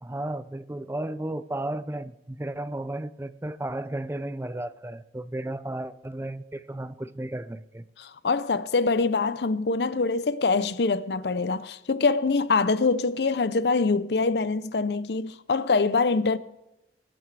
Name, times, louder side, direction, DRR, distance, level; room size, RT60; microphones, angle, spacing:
voice 1, 0.0-7.8, right 1 dB, 15° right, 0.4 m, -34 dB
voice 2, 8.0-16.4, left 4 dB, 70° left, 0.6 m, -24 dB
19.0 x 10.5 x 3.3 m
head